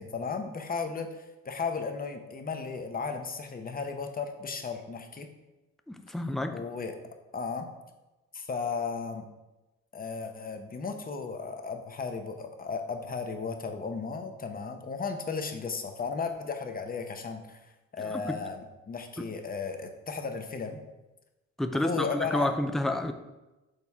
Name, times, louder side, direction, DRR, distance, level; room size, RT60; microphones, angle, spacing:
voice 1, 0.0-5.3 6.5-7.0 7.3-7.7 8.3-9.2 9.9-17.6 17.9-20.8 21.7-22.5, left 5 dB, 30° left, 6 dB, 0.8 m, -35 dB
voice 2, 5.9-6.6 18.0-18.4 19.2-19.3 21.6-23.1, left 1 dB, ahead, 7 dB, 0.4 m, -30 dB
6.6 x 4.1 x 3.5 m, 1.0 s
cardioid pair, 90°, 30 cm